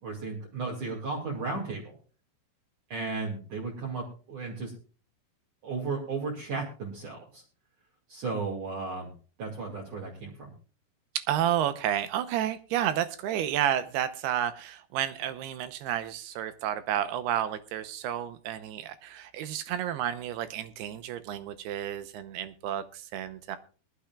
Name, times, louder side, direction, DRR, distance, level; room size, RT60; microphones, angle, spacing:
voice 1, 0.0-2.0 2.9-4.7 5.6-7.4 8.1-9.1 9.4-10.5, right 4 dB, 50° right, -3 dB, 3.5 m, -34 dB
voice 2, 11.3-23.6, right 11 dB, 75° right, 12 dB, 2.7 m, -31 dB
21.5 x 11.5 x 2.3 m, 0.37 s
omnidirectional pair, 5.0 m